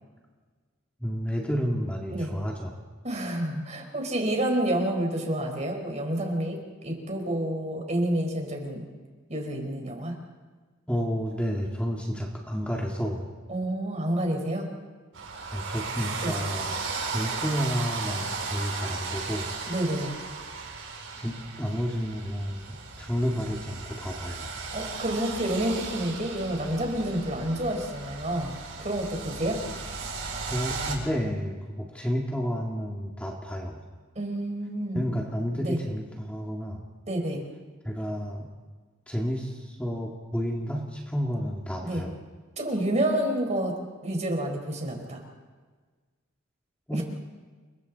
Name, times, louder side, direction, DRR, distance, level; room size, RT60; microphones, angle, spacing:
voice 1, 1.0-2.7 10.9-13.2 15.5-16.8 17.1-19.5 21.2-24.5 30.5-33.8 35.0-36.8 37.8-38.5 39.1-42.1 46.9-47.0, equal, 5° left, -1 dB, 2.1 m, -31 dB
voice 2, 3.0-8.9 9.3-10.1 13.5-14.7 16.2-16.4 19.7-20.1 24.7-28.5 28.8-29.6 34.2-35.1 35.6-35.8 37.1-37.4 41.8-42.1 42.6-45.2 46.9-47.0, right 1 dB, 35° right, 2 dB, 4.6 m, -29 dB
sound 1, 15.1-31.0, right 4 dB, 75° right, 6.2 m, -36 dB
29.5 x 23.0 x 4.2 m, 1.4 s
head